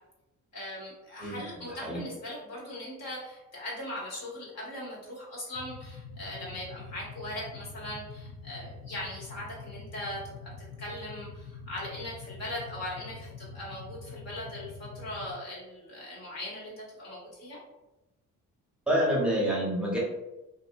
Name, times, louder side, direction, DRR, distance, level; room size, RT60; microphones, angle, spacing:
voice 1, 0.5-10.5 10.8-17.6, left 1 dB, 55° left, -5 dB, 1.3 m, -40 dB
voice 2, 1.7-2.0 18.9-20.0, equal, 5° right, -6 dB, 0.9 m, -27 dB
sound 1, 5.5-15.3, left 4 dB, 90° left, 0.7 m, -45 dB
2.6 x 2.6 x 2.3 m, 0.98 s
cardioid pair, 110°, 32 cm